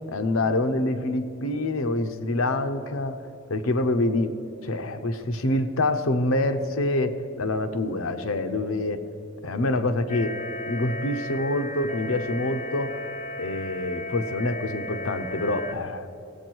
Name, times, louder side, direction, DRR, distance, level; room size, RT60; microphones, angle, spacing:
voice 1, 0.1-3.2 3.5-4.3 4.6-9.0 9.4-10.4 10.7-12.9 13.4-16.1, left 2 dB, 85° left, 8 dB, 0.8 m, -26 dB
sound 1, 10.1-15.7, left 2 dB, 35° left, 0.5 m, -35 dB
17.5 x 8.4 x 4.7 m, 2.9 s
head